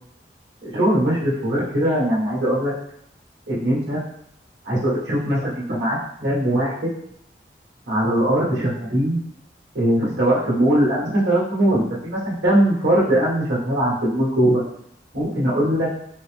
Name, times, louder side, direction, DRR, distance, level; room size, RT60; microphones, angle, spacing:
voice 1, 0.6-2.7 3.5-4.0 4.6-6.9 7.9-9.2 9.7-14.6 15.1-15.9, right 1 dB, 85° right, -6 dB, 1.5 m, -20 dB
4.2 x 2.0 x 3.3 m, 0.74 s
head